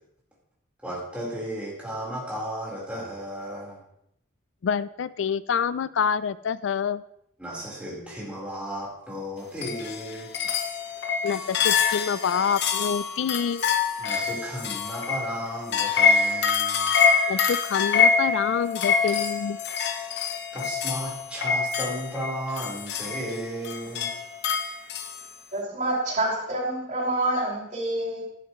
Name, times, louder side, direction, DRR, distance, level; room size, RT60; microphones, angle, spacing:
voice 1, 0.8-3.8 7.4-10.3 14.0-16.9 20.5-24.1, right 1 dB, 5° right, -6 dB, 4.2 m, -34 dB
voice 2, 4.6-7.0 11.2-13.7 17.3-19.6, left 7 dB, 70° left, 17 dB, 0.4 m, -27 dB
sound 1, 9.6-25.2, left 6 dB, 55° left, 0.9 m, -25 dB
voice 3, 25.5-28.2, right 1 dB, 40° right, -6 dB, 5.4 m, -27 dB
12.0 x 11.5 x 3.1 m, 0.75 s
head